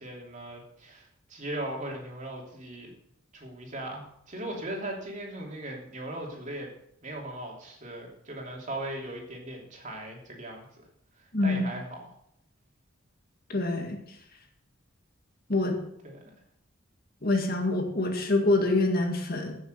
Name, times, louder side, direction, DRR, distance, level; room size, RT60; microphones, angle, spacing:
voice 1, 0.0-2.9 3.3-6.7 7.0-10.6 11.2-12.0 16.0-16.2, right 1 dB, 35° right, 0 dB, 3.0 m, -38 dB
voice 2, 13.5-14.0 15.5-15.8 17.2-19.6, left 2 dB, 45° left, 3 dB, 2.0 m, -25 dB
15.5 x 7.0 x 6.7 m, 0.74 s
head